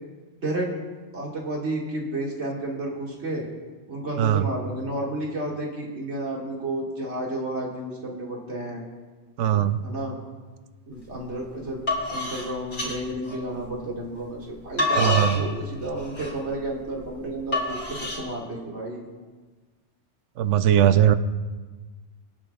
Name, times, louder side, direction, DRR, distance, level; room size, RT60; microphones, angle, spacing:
voice 1, 1.1-3.5 3.9-8.8 9.8-10.2 10.9-11.8 12.1-19.1, right 1 dB, 70° right, -2 dB, 2.3 m, -31 dB
voice 2, 4.2-4.5 9.4-9.8 15.0-15.4 20.4-21.2, right 11 dB, 90° right, 12 dB, 0.9 m, -19 dB
sound 1, 11.0-11.3 11.7-13.8 14.4-18.2, left 1 dB, 45° left, 2.9 m, -28 dB
25.5 x 8.6 x 2.3 m, 1.3 s
omnidirectional pair, 1.2 m